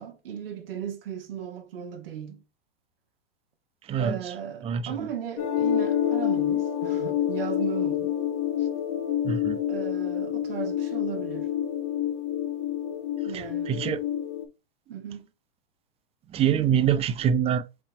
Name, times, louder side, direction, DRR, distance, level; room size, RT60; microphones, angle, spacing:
voice 1, 0.0-2.4 4.0-8.1 8.6-8.7 9.7-11.5 13.2-13.9 14.9-15.3, right 9 dB, 75° right, 1.2 m, -36 dB
sound 1, 5.4-14.5, left 10 dB, 40° left, 0.8 m, -28 dB
voice 2, 9.2-9.6 13.3-14.0 16.3-17.6, right 8 dB, 20° right, 0.5 m, -24 dB
4.4 x 3.3 x 2.9 m
hypercardioid pair, 110°, 29 cm